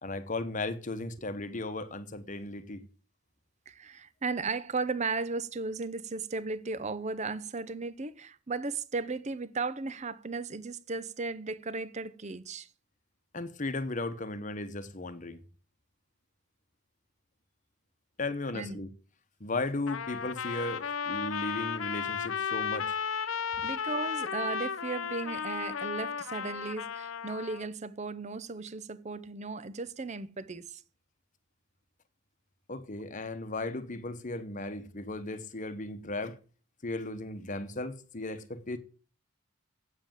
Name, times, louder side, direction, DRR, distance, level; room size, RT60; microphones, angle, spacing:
voice 1, 0.0-2.8 13.3-15.4 18.2-18.9 19.4-22.9 32.7-36.4 36.8-38.8, left 2 dB, 35° left, 1.0 m, -36 dB
voice 2, 3.7-12.7 18.5-18.8 23.6-30.8, right 4 dB, 35° right, 0.7 m, -36 dB
Trumpet, 19.9-27.7, left 6 dB, 75° left, 0.7 m, -34 dB
8.3 x 7.7 x 7.5 m
head